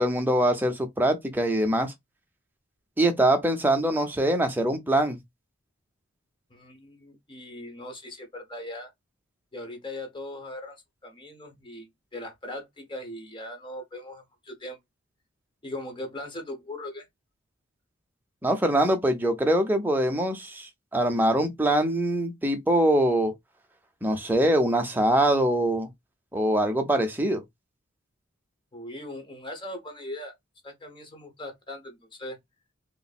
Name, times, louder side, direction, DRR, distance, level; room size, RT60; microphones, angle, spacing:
voice 1, 0.0-1.9 3.0-5.2 18.4-23.3 24.0-25.9 26.3-27.4, right 1 dB, 10° right, 0.6 m, -23 dB
voice 2, 6.5-8.9 9.5-14.8 15.6-17.1 28.7-30.3 30.6-32.4, left 1 dB, 25° left, 1.0 m, -39 dB
3.1 x 2.0 x 4.1 m
head